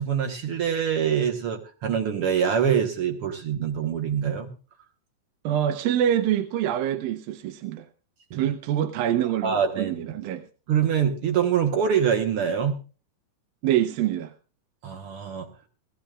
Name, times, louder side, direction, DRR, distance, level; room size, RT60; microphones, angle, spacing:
voice 1, 0.0-4.5 8.3-8.5 9.4-10.1 10.7-12.8 14.8-15.5, right 8 dB, 65° right, 3 dB, 1.4 m, -25 dB
voice 2, 5.4-7.9 8.3-10.4 13.6-14.3, right 11 dB, 85° right, 7 dB, 2.6 m, -25 dB
20.0 x 15.0 x 2.4 m, 0.35 s
omnidirectional pair, 4.0 m